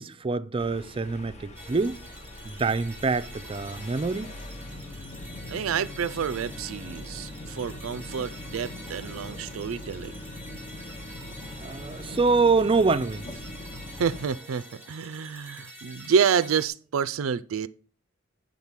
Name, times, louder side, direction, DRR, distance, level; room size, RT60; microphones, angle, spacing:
voice 1, 0.0-2.0 2.4-4.3 11.6-13.3, right 4 dB, 25° right, 0.4 m, -25 dB
sound 1, 0.6-14.2, left 1 dB, 35° left, 0.7 m, -41 dB
sound 2, 1.5-16.7, equal, 10° right, 1.3 m, -46 dB
voice 2, 5.5-10.1 14.0-17.7, right 7 dB, 85° right, 0.4 m, -28 dB
9.8 x 3.8 x 7.3 m
head